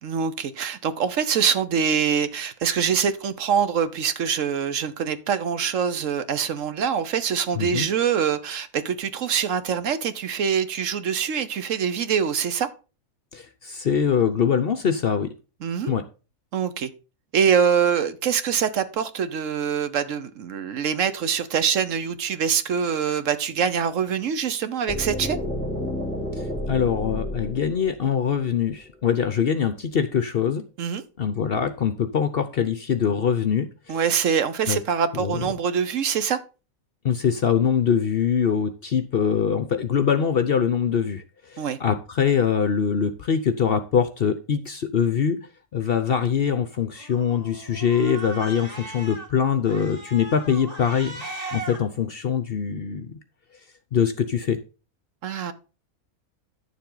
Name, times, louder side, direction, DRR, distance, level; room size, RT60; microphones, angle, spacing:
voice 1, 0.0-12.7 15.6-15.9 16.5-16.9 17.3-25.4 30.8-31.0 33.9-36.4 41.6-41.8 55.2-55.5, right 7 dB, 65° right, 12 dB, 1.1 m, -24 dB
voice 2, 7.5-7.9 13.3-15.3 15.9-16.0 26.4-30.6 31.2-34.0 34.7-34.8 35.1-35.5 37.0-45.4 45.7-53.1 53.9-54.6, left 7 dB, 55° left, 11 dB, 0.7 m, -23 dB
sound 1, 24.9-28.8, left 1 dB, 5° left, 2.0 m, -31 dB
Cat, 46.9-49.3 49.6-51.8, right 2 dB, 25° right, 2.3 m, -38 dB
10.5 x 7.2 x 3.9 m, 0.34 s
omnidirectional pair, 1.5 m